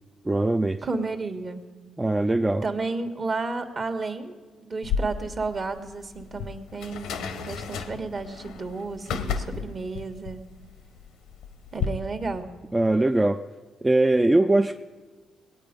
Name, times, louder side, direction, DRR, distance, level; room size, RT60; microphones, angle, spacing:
voice 1, 0.2-0.8 2.0-2.6 12.7-13.4 13.8-14.8, right 2 dB, 15° right, 6 dB, 0.4 m, -21 dB
voice 2, 0.8-1.6 2.6-10.4 11.7-12.5, right 3 dB, 40° right, 7 dB, 1.4 m, -32 dB
sound 1, 4.8-11.9, left 7 dB, 85° left, 1.0 m, -33 dB
20.0 x 8.9 x 5.2 m, 1.3 s
cardioid pair, 90°, 0 cm